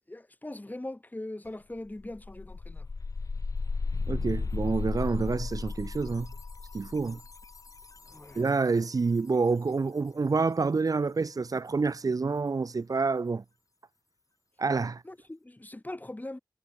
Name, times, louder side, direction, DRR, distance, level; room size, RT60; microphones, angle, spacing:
voice 1, 0.0-2.9 8.1-8.4 15.0-16.4, left 1 dB, 25° left, 3.2 m, -41 dB
sound 1, 1.5-1.6 1.9-8.7, left 4 dB, 55° left, 0.9 m, -35 dB
voice 2, 4.1-6.3 6.7-7.2 8.3-13.4 14.6-15.0, right 4 dB, 60° right, 1.1 m, -28 dB
cardioid pair, 40°, 7 cm